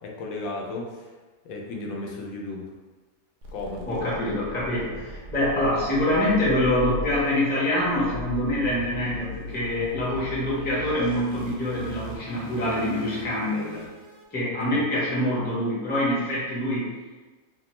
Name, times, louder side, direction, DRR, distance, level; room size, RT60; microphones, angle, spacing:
voice 1, 0.0-1.1 1.4-2.7 3.5-3.9 14.7-14.8, left 2 dB, 80° left, -1 dB, 1.0 m, -34 dB
sound 1, 3.4-14.2, equal, 80° right, 1.0 m, -39 dB
voice 2, 3.9-13.8 14.3-16.9, left 1 dB, 15° left, -7 dB, 0.4 m, -25 dB
2.8 x 2.1 x 3.0 m, 1.3 s
omnidirectional pair, 1.5 m